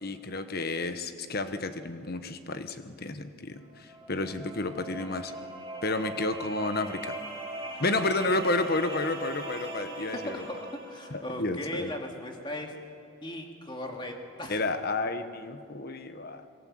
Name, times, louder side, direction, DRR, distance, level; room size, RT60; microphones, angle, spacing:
voice 1, 0.0-5.3 5.8-7.2 7.8-10.4 11.1-11.9 14.5-16.4, left 2 dB, 45° left, 9 dB, 1.2 m, -31 dB
sound 1, 3.5-11.3, right 1 dB, 25° right, 6.6 m, -40 dB
voice 2, 10.2-12.7 13.2-14.6, left 1 dB, 20° left, 2 dB, 2.4 m, -38 dB
27.0 x 21.5 x 7.7 m, 2.4 s
head